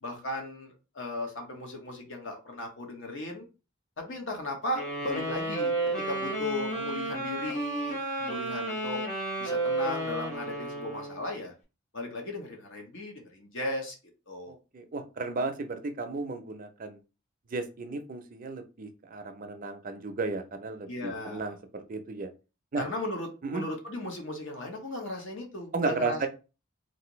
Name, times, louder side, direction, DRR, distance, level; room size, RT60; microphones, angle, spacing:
voice 1, 0.0-3.5 4.0-9.0 9.4-11.5 11.9-13.9 14.3-14.5 20.9-21.5 22.7-26.3, left 2 dB, 60° left, 2 dB, 1.0 m, -36 dB
sound 1, 4.7-11.3, right 2 dB, 35° left, 1.3 m, -32 dB
voice 2, 14.5-17.0 17.5-22.3 22.7-22.8 23.4-23.6 25.7-26.3, right 3 dB, 40° right, 7 dB, 0.5 m, -34 dB
3.3 x 2.6 x 3.0 m, 0.31 s
head